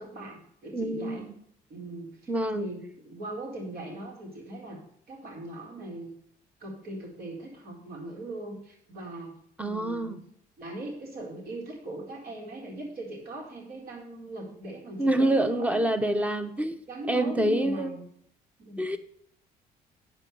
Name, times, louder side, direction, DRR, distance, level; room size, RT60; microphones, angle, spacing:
voice 1, 0.0-1.3 1.7-2.2 2.5-4.8 5.1-6.1 6.6-9.3 9.6-10.2 10.6-16.0 16.9-18.0 18.6-18.9, right 1 dB, 65° right, -1 dB, 4.3 m, -39 dB
voice 2, 0.7-1.3 2.3-2.7 9.6-10.2 15.0-16.8 17.1-18.0 18.8-19.0, right 1 dB, 10° right, 10 dB, 0.9 m, -26 dB
8.8 x 5.7 x 8.2 m, 0.68 s
cardioid pair, 110°, 17 cm